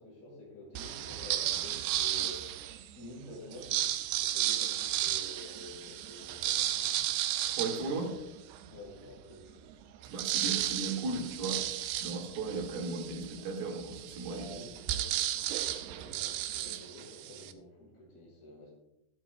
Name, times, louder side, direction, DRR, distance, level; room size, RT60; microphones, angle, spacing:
voice 1, 0.0-6.9 8.7-9.6 12.0-12.2 14.3-18.7, left 1 dB, 70° left, -9 dB, 6.5 m, -49 dB
sound 1, 0.7-2.9 3.5-8.7 9.2-9.3 9.5-17.5, right 13 dB, 90° right, 2.7 m, -34 dB
voice 2, 7.5-8.2 10.1-11.7 12.0-14.5, right 3 dB, 70° right, -1 dB, 4.0 m, -36 dB
15.5 x 12.0 x 2.3 m, 0.88 s
omnidirectional pair, 4.7 m